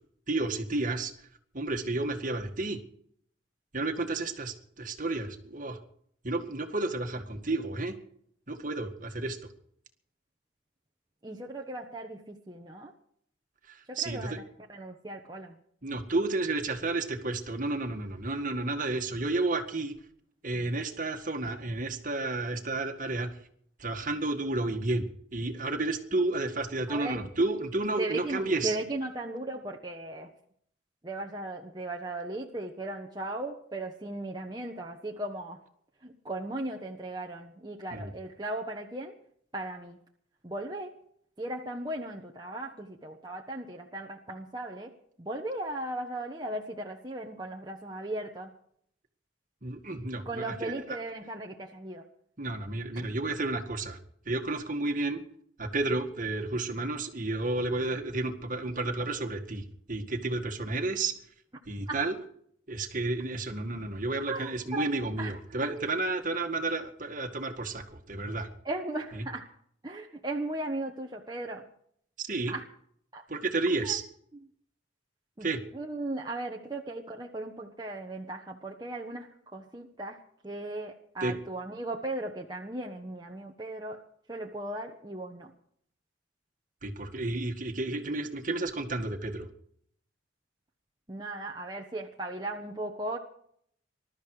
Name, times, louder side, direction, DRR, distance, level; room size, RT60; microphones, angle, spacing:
voice 1, 0.3-1.1 1.5-2.8 3.7-5.8 6.2-8.0 8.5-9.4 13.7-14.4 15.8-20.0 20.4-23.3 23.8-28.8 37.9-38.1 49.6-51.0 52.4-54.0 54.3-55.2 55.6-61.1 61.7-62.2 62.7-68.5 69.1-69.3 72.2-72.5 73.3-74.0 75.4-75.6 81.2-81.4 86.8-89.5, right 2 dB, 45° right, 6 dB, 1.9 m, -31 dB
voice 2, 11.2-12.9 13.9-14.3 14.7-15.5 26.9-27.2 28.0-30.3 31.0-35.6 36.0-39.1 39.5-40.0 40.4-40.9 41.4-44.9 45.2-48.5 50.2-52.0 61.9-62.0 64.3-64.9 65.2-65.3 68.6-69.5 69.8-71.6 72.5-72.6 73.1-73.2 73.8-73.9 75.4-75.5 75.7-79.3 79.5-80.2 80.4-84.0 84.3-85.5 91.1-93.2, right 2 dB, 20° right, 0 dB, 1.2 m, -37 dB
21.0 x 12.5 x 4.9 m, 0.65 s
head